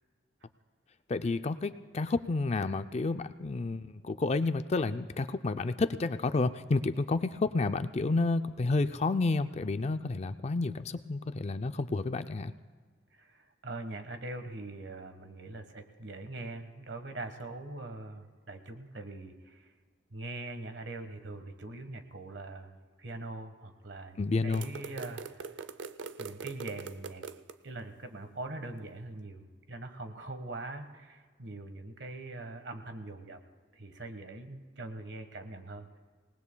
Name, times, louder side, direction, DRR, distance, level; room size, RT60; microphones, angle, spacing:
voice 1, 1.1-12.5 24.2-24.7, left 3 dB, 35° left, 11 dB, 0.4 m, -30 dB
voice 2, 13.1-19.7 20.1-25.5 26.2-27.3 27.6-33.4 33.7-36.0, right 2 dB, 70° right, 7 dB, 1.4 m, -42 dB
sound 1, 24.5-27.5, right 5 dB, 90° right, 0.6 m, -42 dB
27.0 x 19.0 x 2.2 m, 1.5 s
head